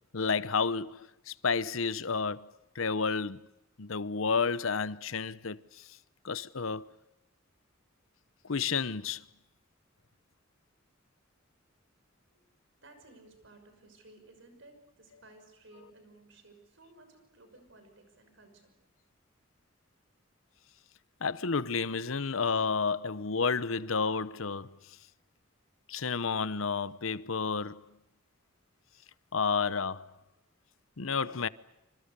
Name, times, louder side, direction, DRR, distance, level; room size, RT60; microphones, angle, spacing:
voice 1, 0.1-2.5 2.7-3.4 3.8-5.6 6.2-6.9 8.4-9.2 21.2-24.7 25.9-27.8 29.3-30.1 31.0-31.5, left 5 dB, 80° left, 0.9 m, -31 dB
voice 2, 12.8-18.8, right 2 dB, 65° right, 6.1 m, -57 dB
27.0 x 26.5 x 6.8 m
head